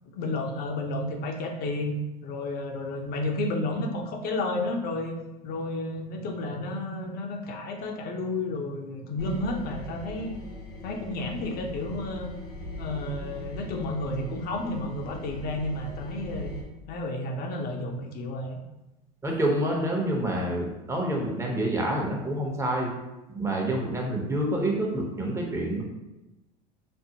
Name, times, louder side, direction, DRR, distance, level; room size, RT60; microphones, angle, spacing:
voice 1, 0.1-1.9 2.2-5.1 5.4-10.4 10.8-12.3 12.8-16.5 16.9-18.6, left 2 dB, 50° left, 2 dB, 0.7 m, -31 dB
sound 1, 9.2-16.6, left 1 dB, 90° left, 1.2 m, -40 dB
voice 2, 19.2-22.9 23.3-25.8, right 1 dB, 15° right, -1 dB, 0.9 m, -27 dB
5.2 x 2.1 x 2.8 m, 1.0 s
supercardioid pair, 100°, 20 cm